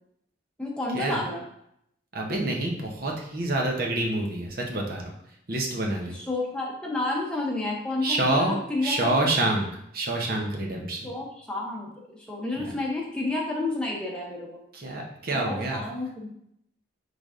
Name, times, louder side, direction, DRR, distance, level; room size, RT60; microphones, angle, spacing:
voice 1, 0.6-1.4 6.1-9.3 11.0-14.5 15.3-16.3, left 2 dB, 5° left, -4 dB, 0.8 m, -30 dB
voice 2, 2.1-5.0 5.5-6.1 8.0-8.6 8.8-9.7 9.9-11.1 12.6-12.7 14.7-15.8, right 2 dB, 50° right, 0 dB, 0.8 m, -27 dB
3.9 x 3.4 x 3.7 m, 0.75 s
head